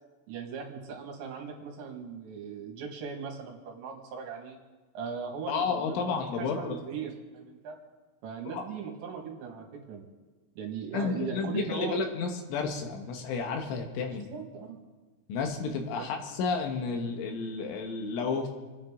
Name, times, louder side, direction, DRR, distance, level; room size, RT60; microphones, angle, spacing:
voice 1, 0.3-4.6 4.9-7.8 8.2-10.0 10.6-12.1 14.1-14.8 16.0-16.1, right 6 dB, 65° right, 1 dB, 3.9 m, -39 dB
voice 2, 5.5-6.8 8.5-8.7 10.9-14.3 15.3-18.5, left 5 dB, 75° left, 3 dB, 3.6 m, -31 dB
28.0 x 10.5 x 3.7 m, 1.3 s
omnidirectional pair, 5.7 m